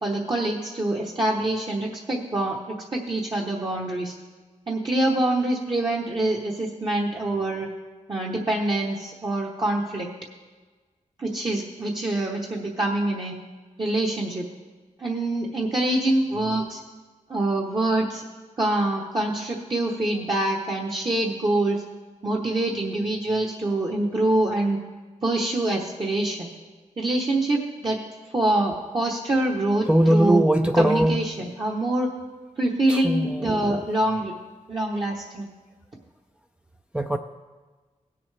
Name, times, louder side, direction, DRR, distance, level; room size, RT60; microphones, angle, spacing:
voice 1, 0.0-2.6 2.9-4.1 4.7-7.7 8.1-10.1 11.2-13.3 13.8-14.5 15.0-16.8 17.3-18.2 18.6-21.8 22.2-24.8 25.2-26.5 27.0-28.0 28.3-30.4 30.7-32.1 32.6-34.3 34.7-35.5, right 1 dB, 35° right, -1 dB, 1.0 m, -25 dB
voice 2, 29.9-31.2 32.9-33.8 36.9-37.2, right 1 dB, 5° right, 5 dB, 0.4 m, -21 dB
17.0 x 6.9 x 3.3 m, 1.3 s
wide cardioid pair, 115°, 14 cm